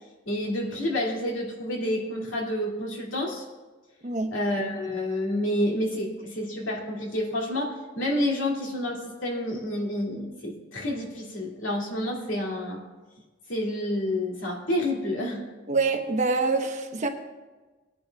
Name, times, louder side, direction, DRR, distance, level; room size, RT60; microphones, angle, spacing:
voice 1, 0.3-3.4 4.3-12.8 13.5-15.4, left 1 dB, 90° left, -1 dB, 2.5 m, -29 dB
voice 2, 4.0-4.3 15.7-17.1, right 3 dB, 40° right, 4 dB, 1.0 m, -25 dB
20.0 x 10.0 x 2.4 m, 1.3 s
head